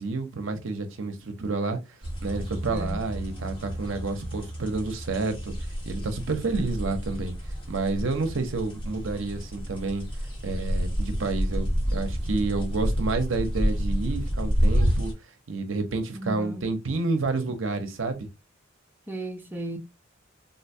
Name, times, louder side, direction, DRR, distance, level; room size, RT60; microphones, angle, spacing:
voice 1, 0.0-1.8 2.2-7.3 7.7-10.0 10.4-15.1 15.5-18.3, right 3 dB, 65° right, 0.7 m, -29 dB
sound 1, 2.0-15.1, equal, 25° left, 1.1 m, -29 dB
voice 2, 2.7-3.0 16.1-16.6 19.1-19.8, right 1 dB, 10° right, 0.5 m, -35 dB
3.9 x 2.2 x 2.6 m
head